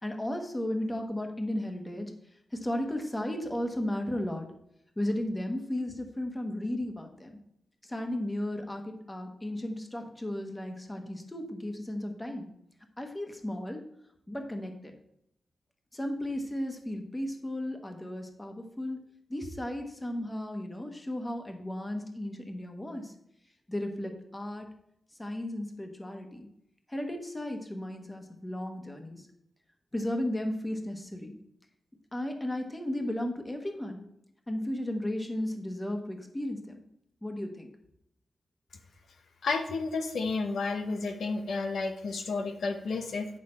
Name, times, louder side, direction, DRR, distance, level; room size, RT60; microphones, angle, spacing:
voice 1, 0.0-2.1 2.5-4.5 5.0-7.4 7.8-12.5 13.0-13.8 14.3-14.9 15.9-19.0 19.3-23.1 23.7-24.7 25.2-26.5 26.9-29.3 29.9-31.3 32.1-34.0 34.5-36.8 37.2-37.7, left 1 dB, 15° left, 4 dB, 1.1 m, -34 dB
voice 2, 39.4-43.3, left 3 dB, 85° left, 5 dB, 1.0 m, -31 dB
9.1 x 6.3 x 4.3 m, 0.77 s
wide cardioid pair, 145°, 0 cm